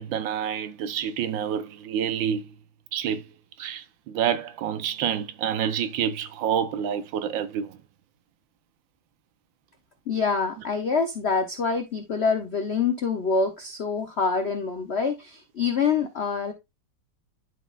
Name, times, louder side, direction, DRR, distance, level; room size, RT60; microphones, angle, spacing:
voice 1, 0.0-2.4 2.9-3.2 3.6-7.8, right 9 dB, 75° right, 1.3 m, -28 dB
voice 2, 10.1-16.5, left 5 dB, 65° left, 0.6 m, -26 dB
11.5 x 4.1 x 2.3 m
omnidirectional pair, 2.2 m